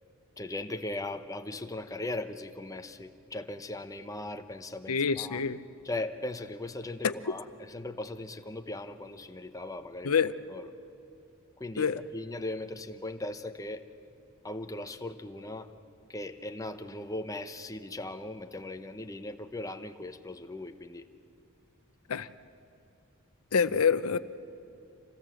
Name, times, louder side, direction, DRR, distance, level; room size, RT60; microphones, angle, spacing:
voice 1, 0.4-5.4 5.8-10.1 10.5-10.7 11.6-13.8 14.4-15.7 16.1-21.1, left 2 dB, 15° left, 7 dB, 0.8 m, -38 dB
voice 2, 4.9-5.6 7.0-7.1 10.0-10.3 11.8-12.0 22.1-22.3 23.5-24.2, left 6 dB, 85° left, 13 dB, 0.7 m, -26 dB
26.5 x 17.0 x 7.7 m, 2.7 s
head